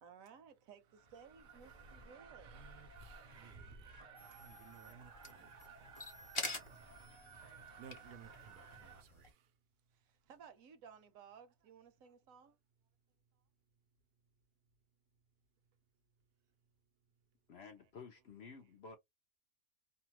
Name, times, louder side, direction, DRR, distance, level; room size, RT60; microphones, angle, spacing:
voice 1, 0.0-2.8 10.0-12.6, right 7 dB, 70° right, 1.0 m, -58 dB
sound 1, 0.9-9.0, right 4 dB, 50° right, 0.6 m, -56 dB
voice 2, 2.4-3.9 4.2-5.8 6.5-9.5, right 7 dB, 90° right, 1.1 m, -60 dB
sound 2, 4.2-9.3, left 2 dB, 30° left, 0.7 m, -48 dB
voice 3, 17.5-19.0, left 5 dB, 60° left, 0.7 m, -53 dB
2.8 x 2.1 x 2.9 m
omnidirectional pair, 1.6 m